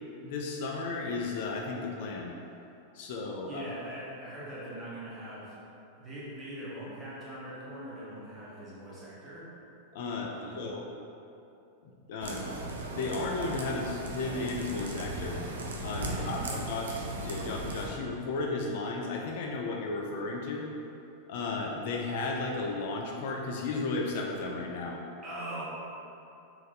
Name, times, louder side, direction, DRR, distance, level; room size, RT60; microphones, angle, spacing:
voice 1, 0.2-2.3 2.9-3.7 9.9-10.9 12.1-12.5 12.9-15.4 15.8-20.7 21.3-25.0, left 3 dB, 50° left, 0 dB, 0.3 m, -34 dB
voice 2, 3.5-5.5 6.0-9.5 10.3-10.7 16.0-16.6 25.2-25.6, right 1 dB, 20° right, -9 dB, 1.2 m, -42 dB
sound 1, 12.2-17.9, right 2 dB, 65° right, 0.4 m, -37 dB
3.7 x 2.6 x 3.4 m, 2.8 s
figure-of-eight pair, 90°, 0 cm